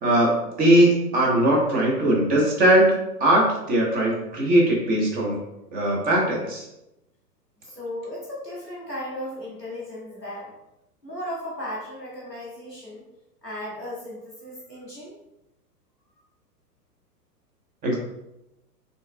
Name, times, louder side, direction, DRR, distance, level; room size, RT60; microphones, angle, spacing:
voice 1, 0.0-2.9 3.2-5.4 5.7-6.6 17.8-17.9, right 1 dB, 20° right, -2 dB, 0.9 m, -20 dB
voice 2, 7.6-10.5 11.0-13.0 13.4-15.2, left 1 dB, ahead, -23 dB, 0.3 m, -36 dB
5.4 x 3.2 x 2.2 m, 0.89 s
figure-of-eight pair, 105°, 48 cm